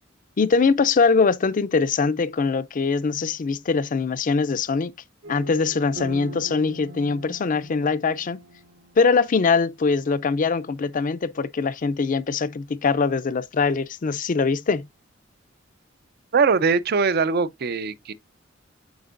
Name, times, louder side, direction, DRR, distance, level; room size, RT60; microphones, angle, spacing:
voice 1, 0.4-4.9 5.3-8.4 9.0-14.9, left 4 dB, 45° left, 0.4 m, -22 dB
sound 1, 5.2-9.7, right 1 dB, 75° right, 2.1 m, -42 dB
voice 2, 16.3-18.1, right 5 dB, 55° right, 0.5 m, -21 dB
8.0 x 5.0 x 2.5 m
head